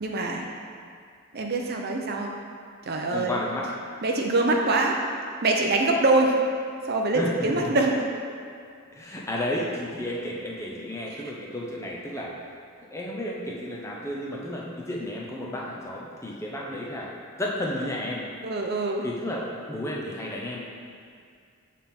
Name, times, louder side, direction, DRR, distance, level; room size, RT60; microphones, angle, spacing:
voice 1, 0.0-0.5 1.3-2.3 2.9-3.4 4.0-5.0 5.4-6.4 6.8-8.0 11.1-11.2 18.4-19.0, right 2 dB, 45° right, 1 dB, 0.5 m, -24 dB
voice 2, 3.1-3.7 7.1-7.7 8.9-12.3 12.8-18.2 19.0-20.6, left 1 dB, 15° left, -3 dB, 0.6 m, -32 dB
7.7 x 3.6 x 4.2 m, 2.3 s
head